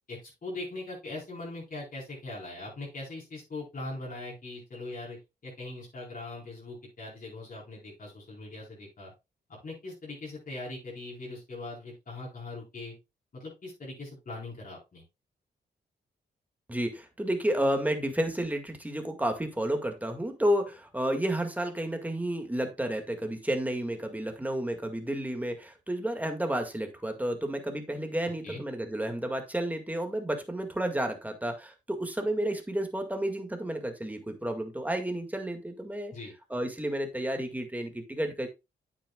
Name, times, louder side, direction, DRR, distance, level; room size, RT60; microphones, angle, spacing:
voice 1, 0.1-5.2 5.4-9.1 9.5-12.9 13.3-15.0 28.4-28.6 36.1-36.3, left 2 dB, 50° left, -4 dB, 4.4 m, -41 dB
voice 2, 16.7-36.1 36.5-38.5, right 1 dB, 10° right, 5 dB, 2.0 m, -31 dB
8.8 x 8.0 x 2.3 m, 0.25 s
cardioid pair, 80°, 18 cm